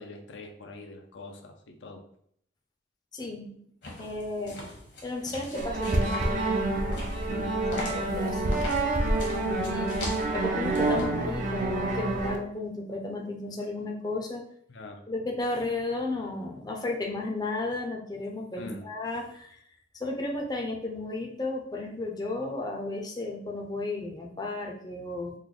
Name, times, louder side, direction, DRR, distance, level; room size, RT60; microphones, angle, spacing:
voice 1, 0.0-2.0 7.3-7.5 14.7-15.0 18.6-18.8, left 2 dB, 85° left, 4 dB, 0.5 m, -42 dB
voice 2, 3.1-3.5 3.9-4.6 5.0-6.4 7.9-8.4 9.4-10.0 10.3-14.4 15.1-19.6 19.9-25.3, left 2 dB, 20° left, 0 dB, 0.5 m, -33 dB
sound 1, 3.8-11.0, left 1 dB, 65° left, 1.0 m, -41 dB
sound 2, 5.5-12.4, right 2 dB, 45° right, 0.5 m, -28 dB
3.2 x 2.1 x 3.8 m, 0.67 s
head